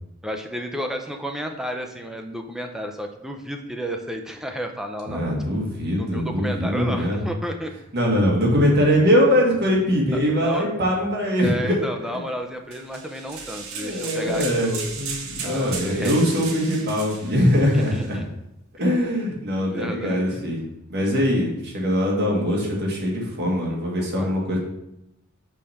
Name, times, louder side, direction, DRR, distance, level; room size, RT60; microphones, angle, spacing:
voice 1, 0.2-5.2 6.0-7.7 10.1-10.7 11.4-15.0 15.4-16.2 17.7-18.2 18.8-18.9 19.6-20.3 24.0-24.4, equal, ahead, 4 dB, 0.5 m, -32 dB
voice 2, 5.1-7.2 7.9-12.1 13.8-18.2 18.8-20.6 20.9-24.6, equal, 55° right, -2 dB, 1.6 m, -22 dB
sound 1, 12.7-18.1, right 5 dB, 80° right, 1.0 m, -36 dB
5.4 x 3.3 x 5.7 m, 0.85 s
head